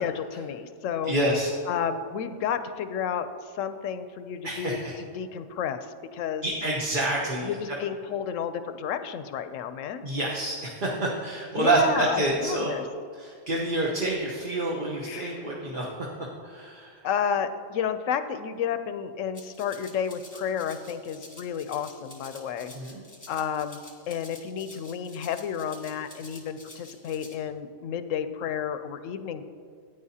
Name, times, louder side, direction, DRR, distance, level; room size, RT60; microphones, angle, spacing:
voice 1, 0.0-1.2 1.7-5.9 6.1-6.4 7.5-10.0 11.6-12.8 15.0-15.4 17.0-22.7 23.3-23.8 24.1-29.5, left 8 dB, 80° left, 10 dB, 1.0 m, -31 dB
voice 2, 1.0-1.5 4.4-4.9 6.4-7.8 10.0-12.9 13.1-15.9 16.4-17.0 22.7-23.0, right 2 dB, 45° right, -3 dB, 1.2 m, -27 dB
Rattle (instrument), 19.3-27.3, left 1 dB, 15° left, 1.2 m, -49 dB
13.5 x 9.3 x 2.8 m, 2.1 s
omnidirectional pair, 1.3 m